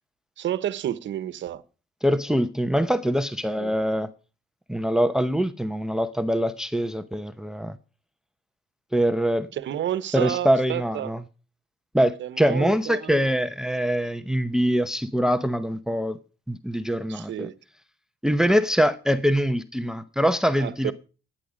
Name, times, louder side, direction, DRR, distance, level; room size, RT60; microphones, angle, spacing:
voice 1, 0.4-1.6 3.6-3.7 9.5-11.1 12.2-13.2 17.1-17.5 20.6-20.9, right 11 dB, 70° right, 1.1 m, -30 dB
voice 2, 2.0-4.1 4.7-7.8 8.9-9.5 10.1-11.2 11.9-16.2 16.5-17.5 18.2-20.9, equal, 5° right, 0.8 m, -23 dB
14.0 x 9.6 x 5.1 m
cardioid pair, 90°, 20 cm